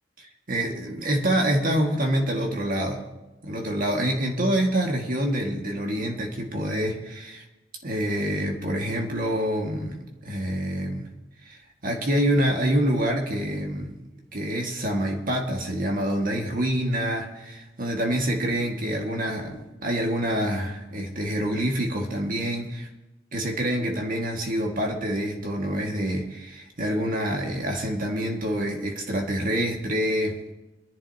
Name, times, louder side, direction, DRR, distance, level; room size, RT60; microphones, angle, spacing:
voice 1, 0.2-3.0 3.4-7.4 7.8-11.1 11.4-11.6 11.8-14.0 14.3-22.9 23.3-30.5, equal, 50° right, 1 dB, 1.8 m, -26 dB
24.0 x 11.0 x 2.8 m, 1.1 s
head